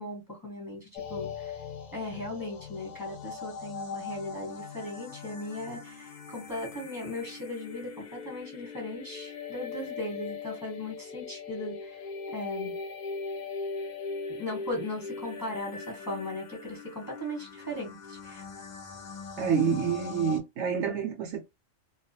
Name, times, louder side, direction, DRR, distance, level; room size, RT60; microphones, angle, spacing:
voice 1, 0.0-1.6 1.9-12.7 14.4-18.4, left 1 dB, 15° left, 1.0 m, -38 dB
sound 1, 0.9-20.4, left 5 dB, 60° left, 0.4 m, -40 dB
voice 2, 19.4-21.4, right 6 dB, 70° right, 0.8 m, -28 dB
2.3 x 2.2 x 2.7 m
omnidirectional pair, 1.4 m